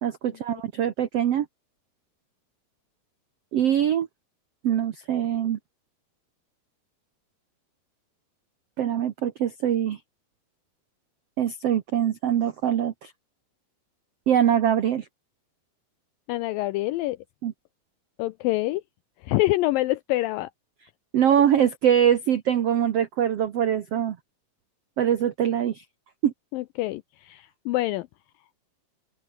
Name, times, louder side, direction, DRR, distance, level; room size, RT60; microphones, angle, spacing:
voice 1, 0.0-1.5 3.5-4.1 4.6-5.6 8.8-10.0 11.4-13.1 14.3-15.1 17.4-17.5 21.1-24.2 25.0-25.8 26.2-26.3, right 9 dB, 85° right, 1.3 m, -23 dB
voice 2, 16.3-17.2 18.2-18.8 19.2-20.5 26.5-28.1, left 17 dB, 85° left, 2.0 m, -26 dB
open air
omnidirectional pair, 4.6 m